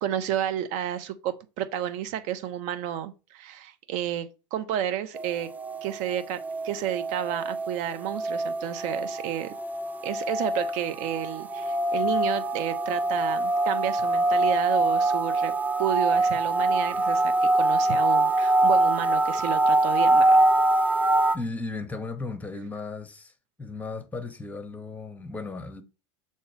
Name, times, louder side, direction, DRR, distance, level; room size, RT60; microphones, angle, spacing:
voice 1, 0.0-5.5 5.8-9.5 10.0-15.5 15.8-20.4, right 10 dB, 55° right, 1.0 m, -31 dB
sound 1, 5.1-21.4, right 2 dB, 10° right, 0.5 m, -24 dB
voice 2, 21.3-23.3 23.6-25.8, left 3 dB, 10° left, 1.1 m, -35 dB
6.8 x 3.1 x 4.6 m
hypercardioid pair, 100°, 16 cm